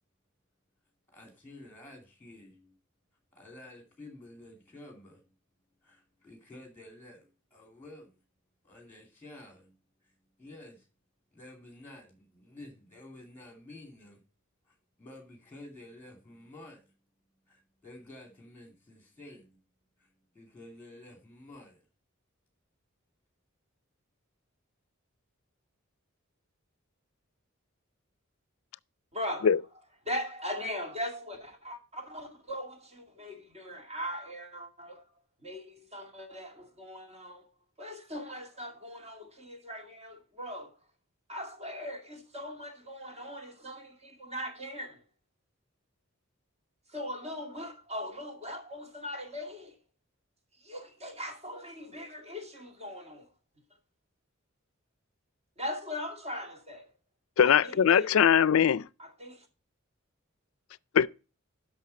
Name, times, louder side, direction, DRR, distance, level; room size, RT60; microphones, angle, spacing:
voice 1, 1.1-2.7 3.3-5.2 5.8-8.2 8.6-9.7 10.0-10.9 11.3-14.2 14.7-16.9 17.5-19.6 20.0-21.8, left 1 dB, 10° left, 2.7 m, -51 dB
voice 2, 29.1-29.5 30.1-35.0 35.4-37.5 37.8-40.7 41.3-45.0 46.9-49.7 50.6-53.3 55.6-56.9 57.4-58.1 59.0-59.5, left 1 dB, 30° right, 2.3 m, -40 dB
voice 3, 57.4-58.9 60.9-61.1, left 8 dB, 75° left, 0.4 m, -21 dB
10.5 x 6.4 x 4.2 m
head